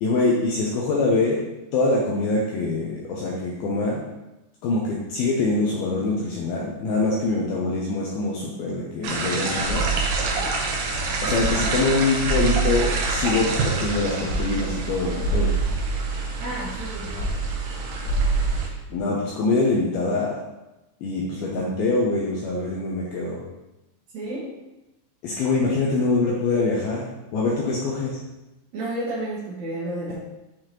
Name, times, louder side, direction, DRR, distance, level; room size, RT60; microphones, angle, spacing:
voice 1, 0.0-1.4 1.7-4.0 4.6-9.9 11.2-13.5 13.8-15.5 18.9-20.4 21.0-23.4 25.2-27.1 27.3-28.2, left 3 dB, 85° left, -4 dB, 2.2 m, -24 dB
sound 1, 9.0-18.7, right 3 dB, 80° right, 2.0 m, -29 dB
sound 2, 9.6-18.6, right 3 dB, 55° left, 2.9 m, -27 dB
voice 2, 16.4-17.3 24.1-24.5 28.7-30.1, right 1 dB, 55° right, -11 dB, 2.1 m, -31 dB
7.6 x 4.9 x 3.0 m, 1.0 s
omnidirectional pair, 5.2 m